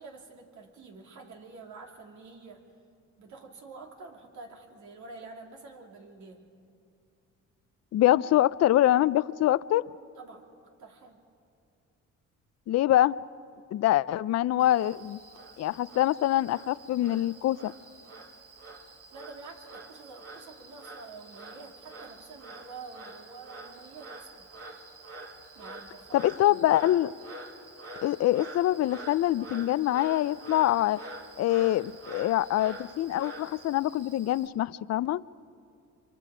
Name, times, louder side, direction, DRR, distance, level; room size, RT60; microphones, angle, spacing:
voice 1, 0.0-2.6 3.2-6.5 10.2-10.5 10.8-11.2 13.9-14.1 19.1-24.5 25.5-26.3, right 3 dB, 70° right, 1 dB, 3.1 m, -48 dB
voice 2, 7.9-9.8 12.7-13.2 13.7-15.2 15.6-17.7 26.1-27.1 28.0-31.0 31.4-35.2, left 13 dB, 60° left, 18 dB, 0.5 m, -25 dB
Frog, 14.6-34.5, right 2 dB, 50° right, 2.6 m, -46 dB
26.5 x 24.5 x 5.0 m, 2.5 s
cardioid pair, 90°, 30 cm